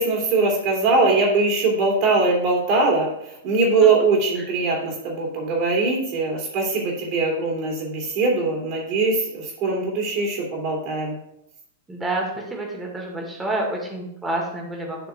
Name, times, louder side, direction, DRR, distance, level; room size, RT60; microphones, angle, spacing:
voice 1, 0.0-3.1 3.4-11.2, right 3 dB, 40° right, 0 dB, 3.1 m, -21 dB
voice 2, 11.9-15.1, right 2 dB, 10° right, -1 dB, 2.1 m, -29 dB
11.0 x 6.2 x 2.5 m, 0.79 s
figure-of-eight pair, 100°, 0 cm